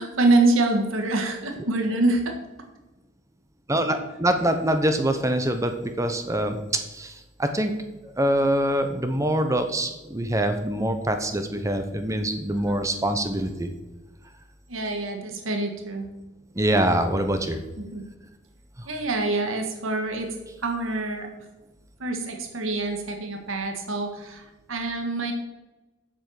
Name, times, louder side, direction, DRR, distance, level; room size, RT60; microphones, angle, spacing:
voice 1, 0.0-2.3 12.5-12.8 14.7-16.1 17.9-18.0 18.8-20.3 20.6-21.3 22.0-24.4 24.7-25.3, right 2 dB, 85° right, 4 dB, 1.6 m, -25 dB
voice 2, 3.7-6.6 6.9-7.7 8.0-13.7 16.5-17.6 18.8-18.9, right 1 dB, 15° right, 7 dB, 0.8 m, -24 dB
8.1 x 7.6 x 6.5 m, 1.1 s
head